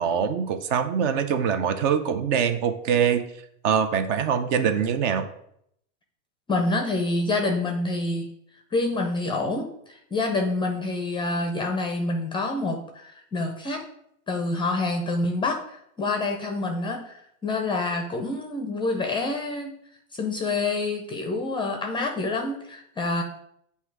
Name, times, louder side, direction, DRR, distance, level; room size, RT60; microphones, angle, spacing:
voice 1, 0.0-3.2 3.6-5.3, right 7 dB, 55° right, 9 dB, 0.8 m, -23 dB
voice 2, 6.5-8.3 8.7-13.8 14.3-19.7 20.2-23.2, left 2 dB, 10° left, 4 dB, 0.4 m, -27 dB
8.1 x 2.8 x 4.6 m, 0.72 s
supercardioid pair, 130°, 41 cm